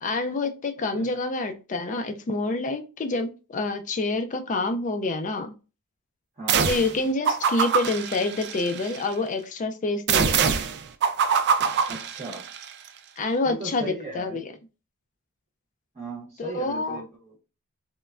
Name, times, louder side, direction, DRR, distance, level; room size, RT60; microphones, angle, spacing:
voice 1, 0.0-5.5 6.7-10.5 13.2-14.5 16.4-17.0, left 2 dB, 35° left, 8 dB, 0.4 m, -27 dB
voice 2, 6.4-6.7 11.9-12.4 13.4-14.4 15.9-17.4, right 3 dB, 30° right, -2 dB, 0.7 m, -37 dB
sound 1, 6.5-7.0 7.3-9.0 10.1-12.7, right 6 dB, 50° right, 0.3 m, -24 dB
3.1 x 2.1 x 2.4 m, 0.32 s
head